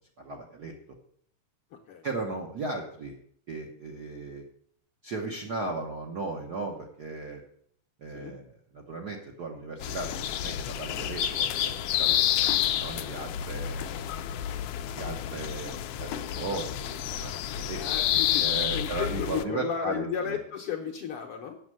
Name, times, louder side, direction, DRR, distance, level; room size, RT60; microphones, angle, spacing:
voice 1, 0.2-0.7 2.0-3.1 3.5-4.4 5.0-7.4 8.0-12.5 12.8-14.1 14.9-17.8 18.1-20.4, right 3 dB, 65° right, 0 dB, 0.9 m, -36 dB
voice 2, 1.7-2.0 8.1-8.4 12.4-12.6 13.0-13.1 17.8-18.4 18.7-21.6, left 8 dB, 65° left, 2 dB, 1.5 m, -34 dB
sound 1, 9.8-19.4, left 11 dB, 85° left, 1.3 m, -29 dB
8.1 x 6.4 x 7.6 m, 0.65 s
omnidirectional pair, 3.3 m